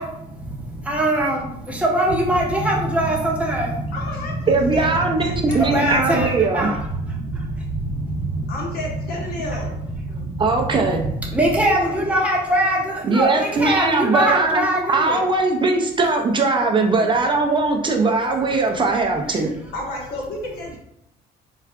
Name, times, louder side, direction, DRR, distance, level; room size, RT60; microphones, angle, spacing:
voice 1, 0.0-8.9 9.1-15.3 16.0-16.1 16.9-17.1 19.3-19.4, right 1 dB, 10° right, -3 dB, 0.8 m, -23 dB
voice 2, 3.9-6.0 8.5-9.8 19.7-20.8, left 2 dB, 65° left, -1 dB, 1.0 m, -31 dB
voice 3, 4.5-6.7 10.4-11.0 13.0-19.5, right 3 dB, 30° right, 2 dB, 0.4 m, -20 dB
4.5 x 2.3 x 2.3 m, 0.79 s
cardioid pair, 110°, 17 cm